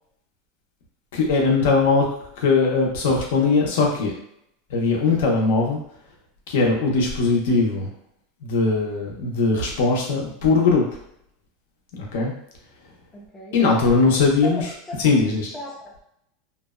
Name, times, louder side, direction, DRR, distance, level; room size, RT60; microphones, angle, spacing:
voice 1, 1.1-2.1 2.4-4.2 4.7-5.8 6.5-7.9 8.4-10.9 12.1-12.3 13.5-14.6 15.0-15.5, left 4 dB, 65° left, -1 dB, 0.6 m, -20 dB
voice 2, 13.1-13.6 14.4-14.6 14.9-15.1 15.4-16.0, left 1 dB, 10° left, -4 dB, 0.4 m, -36 dB
2.6 x 2.0 x 2.3 m, 0.74 s
supercardioid pair, 175°, 0 cm